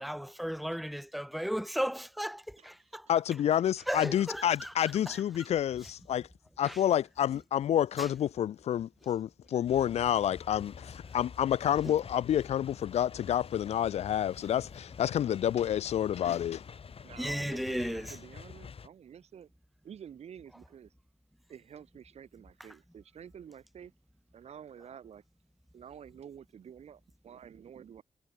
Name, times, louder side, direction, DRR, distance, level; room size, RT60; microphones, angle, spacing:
voice 1, 0.0-3.1 3.9-4.7 5.1-5.2 6.6-6.8 8.0-8.1 17.2-18.1, equal, ahead, 1.8 m, -35 dB
voice 2, 2.6-3.0 17.0-19.5 19.8-20.9 21.5-23.9 24.3-25.2 25.7-28.0, right 8 dB, 80° right, 7.9 m, -50 dB
voice 3, 3.1-6.3 6.6-16.6, left 10 dB, 85° left, 0.7 m, -29 dB
sound 1, 9.7-18.9, left 6 dB, 60° left, 3.5 m, -47 dB
cardioid pair, 55°, 11 cm